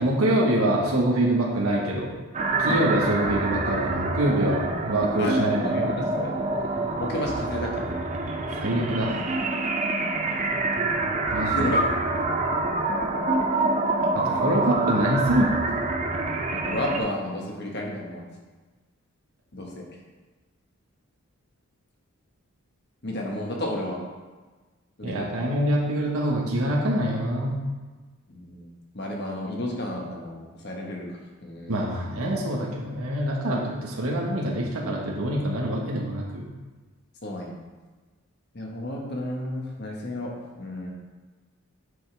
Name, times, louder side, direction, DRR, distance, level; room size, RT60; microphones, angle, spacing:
voice 1, 0.0-2.1 2.6-6.0 8.5-9.2 11.3-11.7 14.1-15.5 25.0-27.6 31.7-36.5, right 1 dB, 80° right, -3 dB, 1.3 m, -25 dB
sound 1, 2.3-17.0, right 2 dB, 30° right, 0.5 m, -26 dB
voice 2, 5.2-6.3 7.0-8.0 11.5-11.8 16.5-18.3 19.5-19.8 23.0-24.0 25.0-25.5 28.3-31.1 31.4-31.7 37.2-37.6 38.5-40.9, left 1 dB, 50° left, -1 dB, 1.3 m, -32 dB
9.6 x 5.4 x 3.4 m, 1.3 s
head